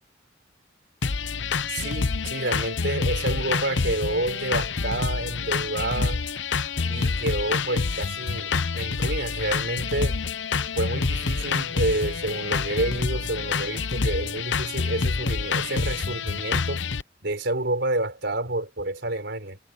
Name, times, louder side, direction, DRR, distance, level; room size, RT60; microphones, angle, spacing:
sound 1, 1.0-17.0, left 4 dB, 70° left, 0.9 m, -27 dB
voice 1, 1.7-6.2 6.9-10.2 10.7-16.8 17.2-19.6, right 2 dB, 65° right, 4.8 m, -29 dB
head